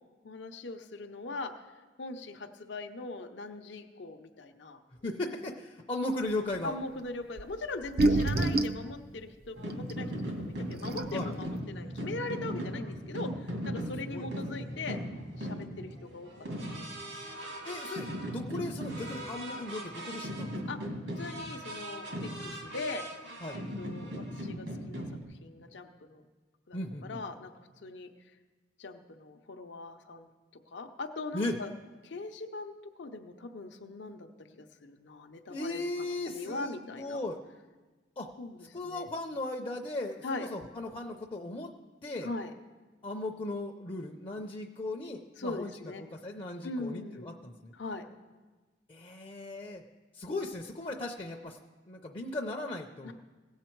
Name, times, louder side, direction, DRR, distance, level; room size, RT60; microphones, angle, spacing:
voice 1, 0.2-1.7 2.0-4.8 6.6-10.1 10.4-15.0 15.4-16.3 16.8-17.5 20.7-23.0 23.6-25.0 25.3-26.2 26.7-28.1 28.8-30.3 30.7-31.7 32.0-35.9 36.3-37.2 38.4-39.1 40.2-40.5 42.2-42.5 45.4-46.0 46.6-47.4 47.7-48.1 53.0-53.1, left 3 dB, 70° left, 5 dB, 0.7 m, -41 dB
voice 2, 5.0-6.8 11.1-11.3 14.1-14.3 17.6-20.5 23.4-23.6 26.7-27.2 31.3-31.5 35.5-37.4 38.2-38.3 38.7-41.7 42.0-42.3 43.0-45.7 46.0-47.7 48.9-49.8 50.1-51.6 51.9-53.1, left 2 dB, 30° left, 1 dB, 0.5 m, -37 dB
sound 1, 7.4-7.5 7.8-8.8 9.9-10.0 10.6-10.7 10.8-11.3, right 2 dB, 55° right, 0.5 m, -26 dB
sound 2, 9.6-25.2, equal, 85° right, 2.1 m, -38 dB
16.5 x 7.3 x 4.5 m, 1.3 s
head